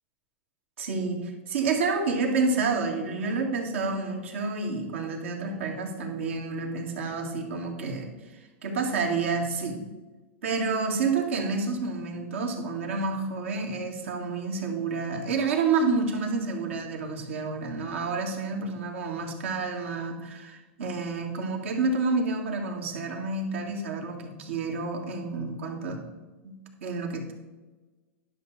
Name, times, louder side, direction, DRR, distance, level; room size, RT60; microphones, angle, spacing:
voice 1, 0.8-9.8 10.4-26.0 26.4-27.3, right 4 dB, 80° right, 1 dB, 1.9 m, -29 dB
10.5 x 6.1 x 4.1 m, 1.2 s
hypercardioid pair, 120°, 7 cm